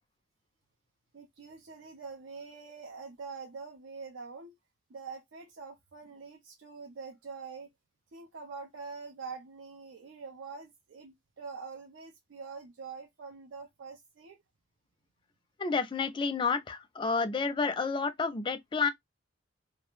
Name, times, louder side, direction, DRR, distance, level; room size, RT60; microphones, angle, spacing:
voice 1, 1.1-4.5 4.9-7.7 8.1-14.4, right 4 dB, 75° right, 0.5 m, -45 dB
voice 2, 15.6-18.9, left 4 dB, 25° left, 0.3 m, -30 dB
2.3 x 2.0 x 2.9 m
head